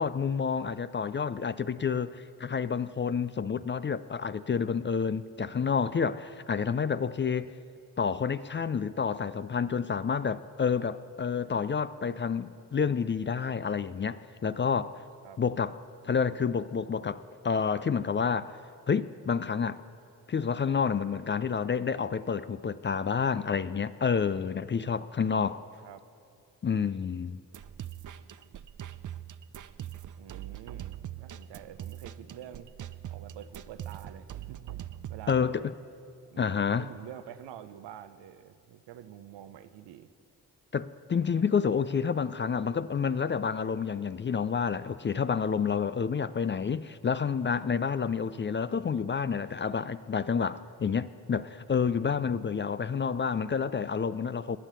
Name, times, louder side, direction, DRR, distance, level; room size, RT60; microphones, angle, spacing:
voice 1, 0.0-7.5 8.0-15.0 15.4-15.8 16.0-18.5 18.9-19.8 20.3-25.6 26.6-27.4 35.3-35.7 36.4-36.9 40.7-54.6, left 6 dB, 25° left, 0.5 m, -29 dB
sound 1, 27.5-35.3, right 11 dB, 45° right, 0.6 m, -42 dB
voice 2, 30.2-32.7 33.1-35.4 36.3-36.4 36.8-40.1, right 10 dB, 75° right, 0.8 m, -47 dB
21.0 x 7.3 x 6.8 m
hypercardioid pair, 45°, 43 cm